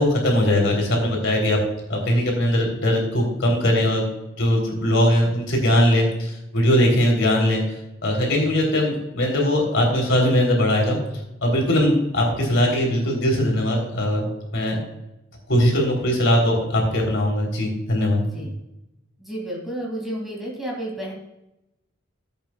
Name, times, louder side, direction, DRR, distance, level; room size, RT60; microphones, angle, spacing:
voice 1, 0.0-1.6 1.9-4.1 4.4-7.6 8.0-11.0 11.4-14.3 14.5-14.8 15.5-18.2, left 1 dB, 65° left, 1 dB, 3.6 m, -20 dB
voice 2, 19.2-21.1, right 1 dB, ahead, -3 dB, 2.7 m, -31 dB
16.0 x 8.2 x 2.4 m, 0.91 s
head